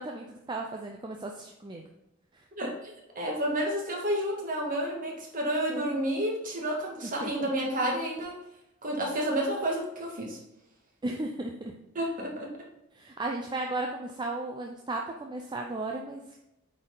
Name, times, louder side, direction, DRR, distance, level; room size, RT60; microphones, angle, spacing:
voice 1, 0.0-1.8 2.3-2.4 7.2-7.3 11.0-11.7 13.0-16.2, right 2 dB, 20° right, 1 dB, 0.6 m, -35 dB
voice 2, 2.6-8.4 8.8-10.4 12.0-12.6, right 1 dB, 40° right, -1 dB, 1.9 m, -30 dB
8.5 x 4.4 x 3.9 m, 0.88 s
head